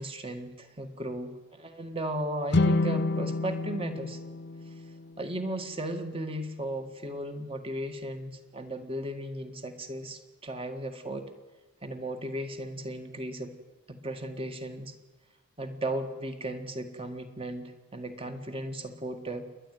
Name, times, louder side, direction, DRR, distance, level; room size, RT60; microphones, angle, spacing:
voice 1, 0.0-4.2 4.7-4.8 5.2-11.3 11.8-13.5 13.9-14.9 15.6-19.5, right 1 dB, 25° right, 7 dB, 1.7 m, -36 dB
sound 1, 2.5-5.8, left 3 dB, 50° left, 0.6 m, -29 dB
28.5 x 11.0 x 9.3 m, 1.3 s
head